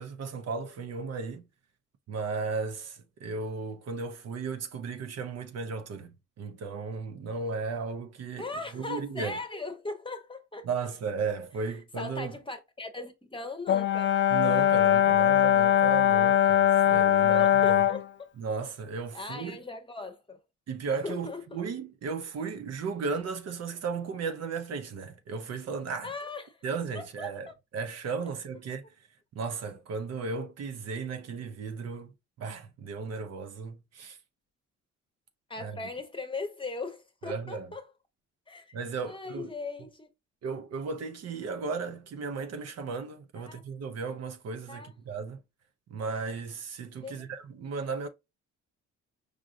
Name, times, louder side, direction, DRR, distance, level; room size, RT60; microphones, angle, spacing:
voice 1, 0.0-1.5 2.1-9.4 10.6-12.3 14.3-17.8 18.4-19.6 20.7-26.1 26.6-27.5 27.7-28.8 29.3-32.1 32.4-34.2 35.6-35.8 37.2-37.7 38.7-39.5 40.4-45.4 45.9-48.1, right 4 dB, 55° right, 0.7 m, -35 dB
voice 2, 8.4-10.9 12.0-14.1 17.3-18.1 19.1-20.4 21.0-21.6 26.0-26.6 26.9-27.5 35.5-37.8 38.5-38.8 39.0-40.1 43.4-43.6 44.7-44.9 47.0-47.3, left 3 dB, 15° left, 0.8 m, -39 dB
Brass instrument, 13.7-18.0, left 11 dB, 40° left, 0.4 m, -21 dB
4.9 x 2.5 x 2.5 m
cardioid pair, 90°, 30 cm